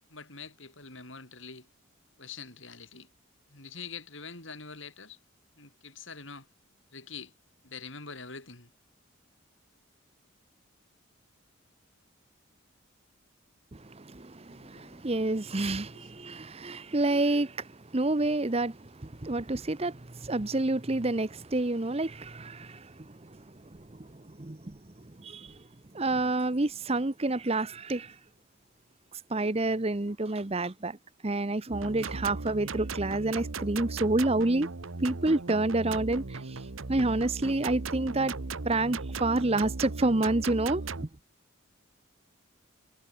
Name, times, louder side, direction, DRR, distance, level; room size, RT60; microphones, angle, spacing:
voice 1, 0.1-1.7 2.2-3.1 3.5-5.2 5.6-6.5 6.9-7.3 7.6-8.7 14.5-15.1 15.6-16.1, left 5 dB, 65° left, 7.0 m, -45 dB
voice 2, 13.7-23.4 23.9-24.8 25.2-25.5 25.9-28.1 29.3-31.0 31.2-34.7 35.0-36.6 36.9-38.3 38.6-41.1, right 2 dB, 30° right, 0.9 m, -29 dB
sound 1, 31.7-41.1, right 3 dB, 75° right, 1.1 m, -37 dB
head